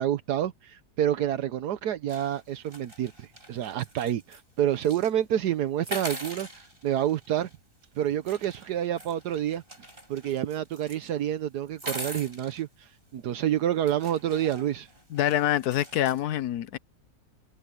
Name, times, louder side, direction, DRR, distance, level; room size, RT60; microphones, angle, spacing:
voice 1, 0.0-7.5 7.9-9.6 10.1-14.9, right 11 dB, 80° right, 1.4 m, -28 dB
sound 1, 2.1-4.4 4.8-5.1 5.8-7.6 8.2-11.1 11.7-12.6 13.3-13.4 13.9-16.2, right 1 dB, 35° right, 7.7 m, -42 dB
voice 2, 15.1-16.8, left 12 dB, 70° left, 1.3 m, -26 dB
omnidirectional pair, 1.7 m